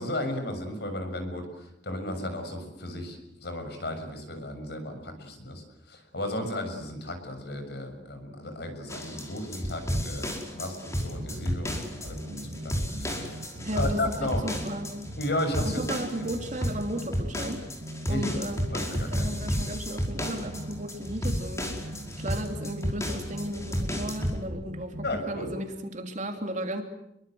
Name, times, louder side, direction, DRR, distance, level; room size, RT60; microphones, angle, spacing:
voice 1, 0.0-13.4 13.7-14.5 15.2-15.8 18.1-18.3 18.7-19.3 25.0-25.5, left 1 dB, 65° left, 6 dB, 7.0 m, -34 dB
sound 1, 8.9-24.4, equal, 15° left, 5.3 m, -32 dB
sound 2, 11.1-25.6, right 1 dB, 60° right, 2.2 m, -41 dB
voice 2, 13.6-14.9 15.6-17.6 18.0-18.6 19.1-21.7 22.2-25.0 25.3-26.8, right 1 dB, 45° right, 4 dB, 3.3 m, -34 dB
29.0 x 23.5 x 7.9 m, 0.81 s
head